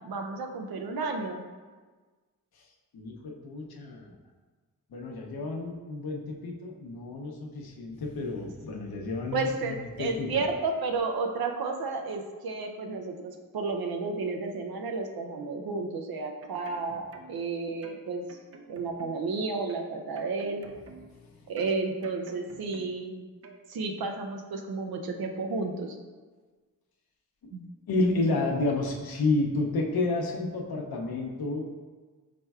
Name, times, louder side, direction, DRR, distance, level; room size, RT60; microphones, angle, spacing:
voice 1, 0.0-1.5 9.3-18.2 18.7-20.7 21.5-23.3 23.7-26.0 27.5-27.6, right 3 dB, 90° right, 4 dB, 0.6 m, -32 dB
voice 2, 2.9-4.2 4.9-10.4 27.9-31.7, left 2 dB, 90° left, 0 dB, 0.7 m, -30 dB
sound 1, 16.4-17.5 17.8-19.3 19.7-21.2 21.6-23.1 23.4-23.6, right 3 dB, 45° right, 0.4 m, -50 dB
5.0 x 4.3 x 2.3 m, 1.4 s
wide cardioid pair, 110°, 36 cm